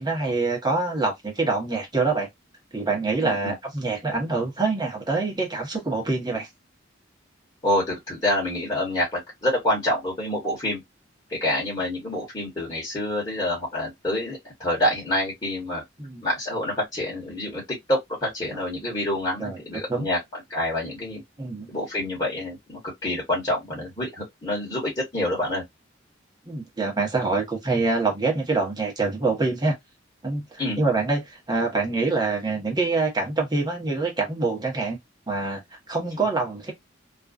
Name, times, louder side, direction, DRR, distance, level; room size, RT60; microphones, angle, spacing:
voice 1, 0.0-2.3 2.7-6.5 16.0-16.2 18.5-18.6 19.4-19.6 19.9-20.1 21.4-21.7 26.5-29.8 30.2-35.0 35.3-35.6 35.9-36.7, right 3 dB, 20° right, 0.9 m, -25 dB
voice 2, 3.2-3.5 7.6-10.8 11.3-15.8 16.2-21.2 21.7-25.6 30.6-30.8, left 1 dB, 25° left, 1.1 m, -27 dB
2.5 x 2.2 x 2.3 m
head